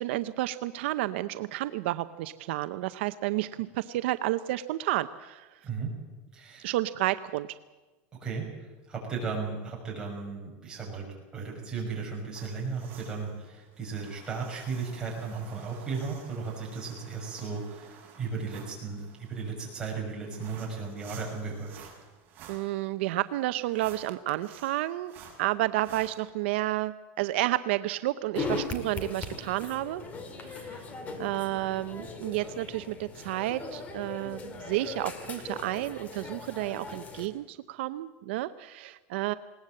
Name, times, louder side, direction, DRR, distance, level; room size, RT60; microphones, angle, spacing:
voice 1, 0.0-5.5 6.6-7.6 22.5-25.1 25.4-30.1 30.4-30.9 31.2-39.3, right 16 dB, 75° right, 12 dB, 0.6 m, -31 dB
voice 2, 6.3-6.7 8.2-8.5 8.9-11.1 11.3-21.8, right 4 dB, 15° right, -2 dB, 6.0 m, -35 dB
sound 1, 12.3-26.2, right 6 dB, 30° right, 5.9 m, -52 dB
sound 2, 28.3-37.3, left 3 dB, 25° left, 2.2 m, -39 dB
20.0 x 18.5 x 7.7 m, 1.2 s
supercardioid pair, 160°, 6 cm